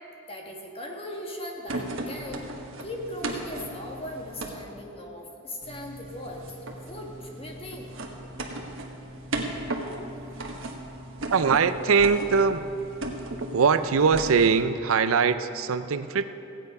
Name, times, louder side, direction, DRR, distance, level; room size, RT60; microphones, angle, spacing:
voice 1, 0.3-2.5 2.8-7.9 10.2-10.3, left 1 dB, 30° left, 0 dB, 1.6 m, -39 dB
sound 1, 1.7-4.6 5.6-14.6, right 1 dB, 70° right, 1.4 m, -36 dB
voice 2, 11.3-12.7 13.5-16.3, right 5 dB, 85° right, 12 dB, 0.5 m, -22 dB
15.5 x 9.3 x 5.4 m, 2.9 s
head